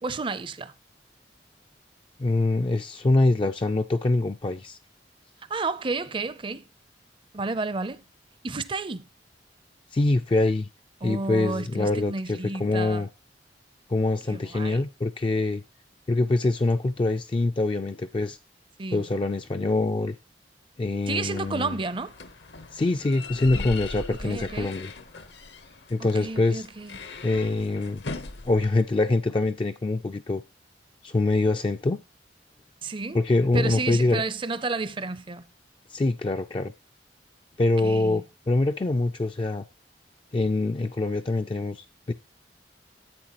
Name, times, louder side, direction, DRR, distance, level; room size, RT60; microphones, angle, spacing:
voice 1, 0.0-0.7 5.5-6.7 7.3-8.0 8.4-9.1 11.0-13.1 14.3-14.8 18.8-19.1 21.1-22.2 24.1-24.7 26.0-27.1 32.8-33.2 33.5-35.5 37.8-38.2, right 3 dB, 30° right, 0.5 m, -31 dB
voice 2, 2.2-4.8 9.9-10.7 11.0-13.1 13.9-15.6 16.1-18.4 18.9-20.1 20.8-21.8 22.7-24.9 25.9-26.7 27.2-28.0 28.4-30.4 31.0-32.0 33.1-34.2 35.9-36.7 37.6-39.6 40.3-42.1, left 2 dB, 30° left, 0.4 m, -24 dB
sound 1, 21.2-28.8, left 3 dB, 70° left, 0.9 m, -40 dB
10.5 x 8.1 x 2.9 m
head